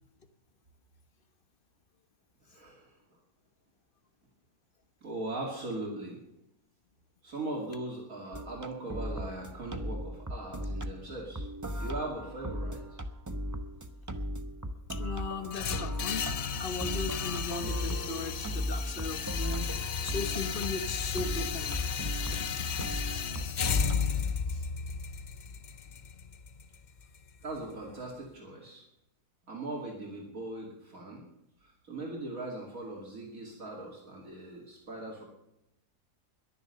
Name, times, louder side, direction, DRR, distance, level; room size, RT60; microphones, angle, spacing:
voice 1, 2.5-2.9 5.0-6.2 7.2-11.4 11.7-12.8 27.4-28.8 29.5-31.2 31.6-35.2, right 2 dB, 60° right, -2 dB, 3.0 m, -39 dB
sound 1, 8.3-24.4, equal, 15° right, 0.7 m, -37 dB
voice 2, 14.9-16.2 16.6-19.7 20.0-21.8 22.3-22.7, left 3 dB, 40° left, 9 dB, 1.2 m, -37 dB
sound 2, 15.5-27.5, left 6 dB, 85° left, 0.4 m, -34 dB
21.5 x 7.3 x 6.8 m, 0.84 s
omnidirectional pair, 1.7 m